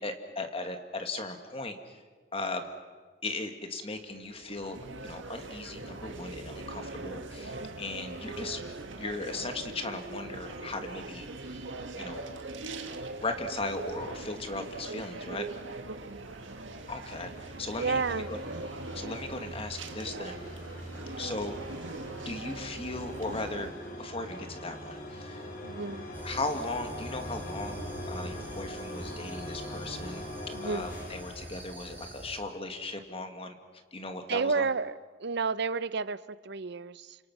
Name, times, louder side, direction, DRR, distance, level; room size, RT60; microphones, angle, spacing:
voice 1, 0.0-1.9 2.3-2.7 3.2-4.8 5.0-8.6 9.0-11.6 12.0-12.2 13.2-15.5 16.9-18.4 18.9-20.4 21.2-21.6 22.3-23.7 24.0-25.5 26.2-30.2 30.6-33.5 33.9-34.7, left 2 dB, 30° left, 6 dB, 1.9 m, -37 dB
sound 1, 3.9-23.7, right 2 dB, 80° right, 1.8 m, -41 dB
voice 2, 7.4-7.7 15.9-16.3 17.8-18.3 21.0-21.1 25.6-26.1 30.5-30.9 34.3-37.2, right 4 dB, 60° right, 16 dB, 0.7 m, -32 dB
sound 2, 16.2-32.3, equal, 45° left, 4.1 m, -42 dB
sound 3, 26.1-32.4, right 1 dB, 10° right, 4.7 m, -47 dB
29.5 x 26.5 x 6.1 m, 1.4 s
head